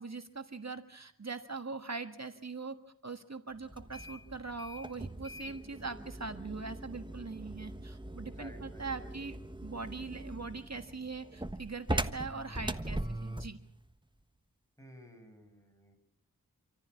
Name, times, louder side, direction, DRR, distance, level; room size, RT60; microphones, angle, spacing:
voice 1, 0.0-13.6, right 4 dB, 50° right, 8 dB, 1.6 m, -42 dB
sound 1, 3.7-13.6, right 1 dB, 15° right, 1.3 m, -40 dB
voice 2, 8.3-9.1 14.8-16.0, equal, 10° left, 4 dB, 7.3 m, -55 dB
27.0 x 14.5 x 8.5 m, 0.66 s
wide cardioid pair, 40°, 34 cm